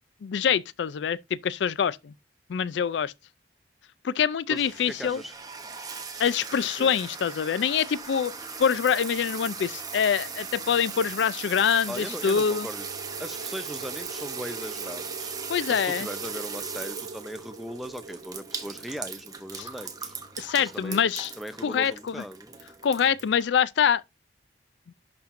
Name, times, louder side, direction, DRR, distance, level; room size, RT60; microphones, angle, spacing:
voice 1, 0.2-2.1 2.5-3.1 4.0-5.2 6.2-8.3 8.6-12.7 15.5-16.1 19.6-19.7 20.4-21.3 21.6-22.2 22.8-24.0, left 7 dB, 70° left, 0.4 m, -25 dB
voice 2, 4.5-5.3 6.8-6.9 11.9-12.9 13.2-15.3 15.7-20.2 20.6-21.0 21.4-22.5, equal, ahead, 0.5 m, -38 dB
sound 1, 4.6-23.4, right 5 dB, 20° right, 1.0 m, -38 dB
sound 2, 12.8-21.1, right 4 dB, 75° right, 0.5 m, -44 dB
11.5 x 4.3 x 2.5 m
head